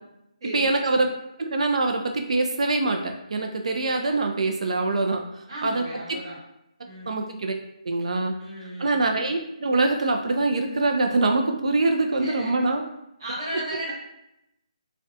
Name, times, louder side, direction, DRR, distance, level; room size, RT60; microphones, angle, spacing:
voice 1, 0.5-1.1 1.4-5.2 5.6-6.2 7.1-7.5 7.9-8.3 8.8-12.8, right 2 dB, 60° right, 3 dB, 0.3 m, -24 dB
voice 2, 5.5-6.4 6.8-7.2 8.4-9.0 12.1-12.5 13.2-13.9, right 1 dB, 40° right, -8 dB, 1.0 m, -35 dB
2.4 x 2.1 x 2.6 m, 0.83 s
hypercardioid pair, 165°, 4 cm